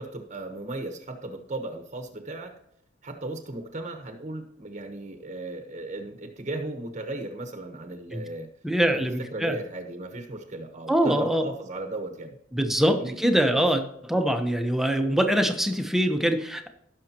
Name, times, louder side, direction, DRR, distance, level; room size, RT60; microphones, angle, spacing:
voice 1, 0.0-2.6 3.0-8.5 8.8-12.4 12.9-13.2 13.5-13.7, right 2 dB, 40° right, 5 dB, 1.1 m, -36 dB
voice 2, 8.6-9.6 10.9-11.5 12.5-13.8 14.1-16.7, right 1 dB, ahead, 5 dB, 1.0 m, -23 dB
17.0 x 6.4 x 3.0 m, 0.77 s
head